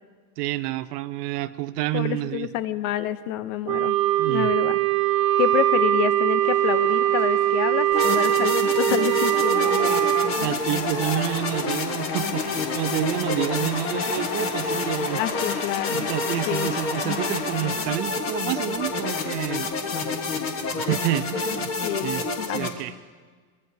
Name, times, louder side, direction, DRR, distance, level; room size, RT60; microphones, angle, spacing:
voice 1, 0.4-2.5 4.2-4.5 10.3-15.2 15.9-19.7 20.8-21.7 22.0-22.2 22.5-22.9, right 14 dB, 90° right, 12 dB, 0.9 m, -29 dB
voice 2, 1.9-4.0 4.3-4.8 5.4-10.0 15.1-16.1 16.5-16.7 21.8-22.6, left 12 dB, 60° left, 14 dB, 0.8 m, -28 dB
Wind instrument woodwind instrument, 3.7-10.3, right 13 dB, 30° right, 1.0 m, -21 dB
sound 1, 6.4-17.7, left 5 dB, 75° left, 3.5 m, -36 dB
sound 2, 7.9-22.7, left 4 dB, 30° left, 1.4 m, -28 dB
23.0 x 21.5 x 2.8 m, 1.5 s
supercardioid pair, 170°, 46 cm